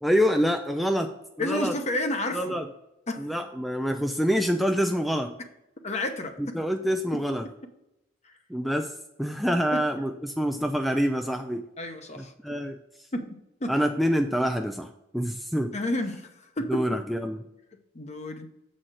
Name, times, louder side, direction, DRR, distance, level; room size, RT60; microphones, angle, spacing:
voice 1, 0.0-1.1 1.4-1.8 2.3-2.7 3.2-5.3 6.4-7.5 8.5-8.9 9.2-11.6 12.2-12.8 13.7-15.7 16.7-17.4, equal, ahead, 5 dB, 0.3 m, -26 dB
voice 2, 1.4-2.6 3.1-3.3 5.8-6.6 8.2-8.3 9.7-9.8 11.8-12.3 13.1-13.7 15.7-16.9 17.9-18.5, left 1 dB, 35° left, 6 dB, 0.9 m, -31 dB
7.7 x 4.2 x 6.2 m, 0.88 s
head